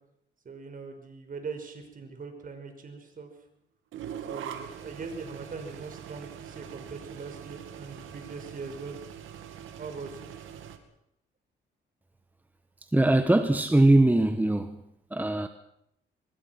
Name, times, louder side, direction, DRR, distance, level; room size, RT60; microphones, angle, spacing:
voice 1, 0.4-3.3 4.3-9.0 9.8-10.3, right 4 dB, 45° right, 5.5 m, -41 dB
sound 1, 3.9-10.8, right 9 dB, 80° right, 2.5 m, -42 dB
voice 2, 12.9-14.8 15.1-15.5, right 1 dB, 10° right, 1.3 m, -21 dB
24.5 x 21.0 x 6.0 m
cardioid pair, 90°, 20 cm